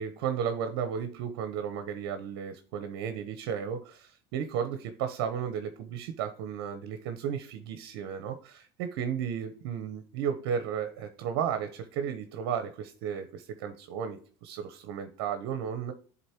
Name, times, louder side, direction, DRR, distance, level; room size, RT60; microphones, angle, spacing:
voice 1, 0.0-15.9, right 8 dB, 70° right, 8 dB, 0.9 m, -34 dB
10.5 x 4.1 x 2.9 m, 0.44 s
supercardioid pair, 105°, 12 cm